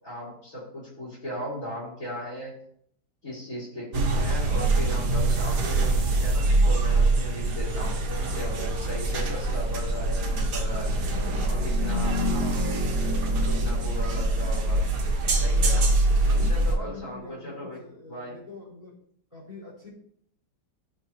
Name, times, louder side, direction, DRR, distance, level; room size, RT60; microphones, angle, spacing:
voice 1, 0.0-2.6 3.2-8.0 8.3-10.9 11.4-12.2 13.4-14.8 15.3-15.9 16.2-18.4, left 1 dB, 45° left, -7 dB, 4.5 m, -37 dB
sound 1, 3.9-16.7, right 2 dB, 65° right, 1.7 m, -24 dB
voice 2, 11.1-11.7 15.5-16.0 16.7-18.9 19.3-19.9, left 3 dB, 15° left, -10 dB, 4.3 m, -44 dB
13.5 x 5.6 x 3.0 m, 0.66 s
omnidirectional pair, 2.0 m